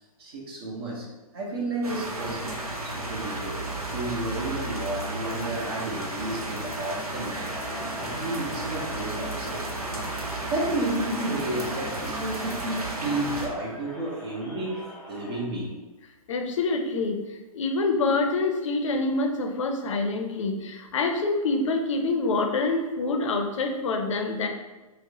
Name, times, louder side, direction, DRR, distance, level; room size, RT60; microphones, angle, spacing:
voice 1, 0.2-1.1 1.3-2.5 2.8-3.6 3.9-7.5 7.9-9.6 10.5-15.7, right 2 dB, 40° right, -2 dB, 1.0 m, -32 dB
sound 1, 1.8-13.5, right 2 dB, 75° right, 0.7 m, -33 dB
Crowd, 7.4-15.6, left 1 dB, 5° left, 0.4 m, -44 dB
voice 2, 16.3-24.5, left 3 dB, 55° left, 4 dB, 0.6 m, -26 dB
4.6 x 2.1 x 2.9 m, 1.1 s
figure-of-eight pair, 120°, 19 cm